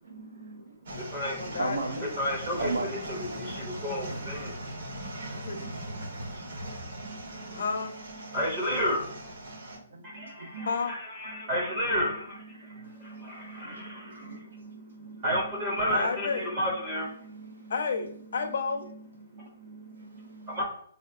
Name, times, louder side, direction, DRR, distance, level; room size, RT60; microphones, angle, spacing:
voice 1, 0.1-0.8 1.4-2.0 2.6-2.9 3.7-4.0 5.0-7.6 8.3-8.4 9.4-10.7 11.3-11.5 12.0-16.0 16.3-16.6 16.9-17.8 18.4-18.5 19.2-20.6, right 3 dB, 75° right, 0.7 m, -41 dB
sound 1, 0.9-9.8, right 1 dB, 50° right, 1.1 m, -39 dB
voice 2, 1.4-2.2 5.3-5.6 7.5-7.9 10.7-10.9 15.9-16.5 17.7-18.9, left 5 dB, 55° left, 0.6 m, -31 dB
voice 3, 2.2-4.5 8.3-9.0 10.0-12.4 13.0-14.3 15.2-17.1 20.5-20.6, equal, 20° right, 0.7 m, -31 dB
4.2 x 2.8 x 2.4 m
hypercardioid pair, 180°, 0 cm